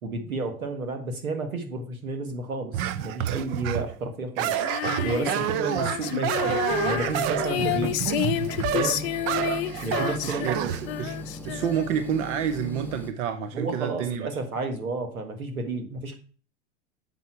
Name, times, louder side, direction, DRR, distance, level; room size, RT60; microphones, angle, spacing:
voice 1, 0.0-4.7 5.0-8.0 8.7-9.1 9.8-10.7 13.5-16.2, right 3 dB, 90° right, 6 dB, 1.8 m, -31 dB
sound 1, 2.7-3.9 4.4-10.8, right 11 dB, 35° right, 0.5 m, -28 dB
Female singing, 4.6-12.1, left 13 dB, 50° left, 0.6 m, -30 dB
sound 2, 6.7-13.1, equal, 5° left, 0.7 m, -38 dB
voice 2, 10.2-11.2 11.4-14.3, right 8 dB, 60° right, 8 dB, 1.0 m, -29 dB
7.2 x 5.5 x 4.6 m, 0.39 s
hypercardioid pair, 110°, 41 cm